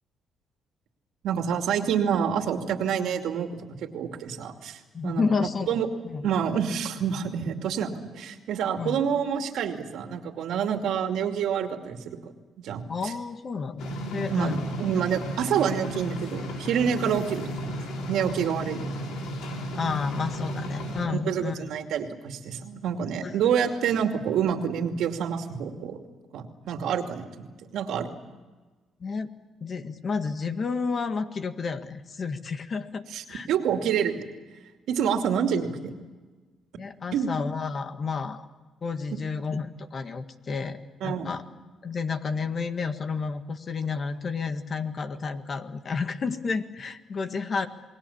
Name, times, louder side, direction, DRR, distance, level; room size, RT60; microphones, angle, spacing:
voice 1, 1.2-5.9 6.2-12.3 12.6-13.1 14.3-17.5 18.1-18.9 21.0-26.0 26.3-28.1 33.1-34.2 34.9-35.9 37.1-37.3 41.0-41.3, right 8 dB, 80° right, 5 dB, 2.5 m, -28 dB
voice 2, 4.9-6.3 8.8-9.0 12.9-14.7 19.7-21.7 23.2-23.3 29.0-29.3 29.6-33.0 33.3-33.5 36.8-38.5 38.8-41.4 41.8-47.7, left 5 dB, 45° left, 8 dB, 1.7 m, -31 dB
sound 1, 13.8-21.1, equal, 85° left, 4.1 m, -34 dB
28.5 x 20.5 x 7.2 m, 1.3 s
cardioid pair, 90°, 0 cm